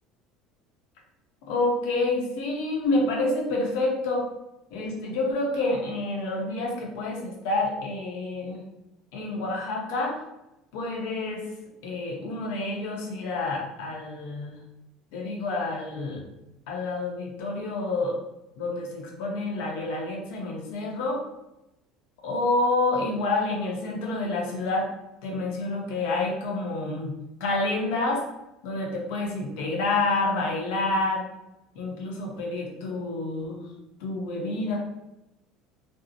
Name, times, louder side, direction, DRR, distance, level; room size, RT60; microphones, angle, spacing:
voice 1, 1.5-4.3 4.7-8.6 9.1-10.2 10.7-11.5 11.8-14.6 15.1-16.2 16.7-18.2 18.6-21.2 22.2-24.9 25.2-28.2 28.6-31.2 31.7-33.7 34.0-34.8, left 2 dB, 80° left, -1 dB, 0.7 m, -28 dB
2.6 x 2.0 x 2.6 m, 0.91 s
cardioid pair, 140°, 0 cm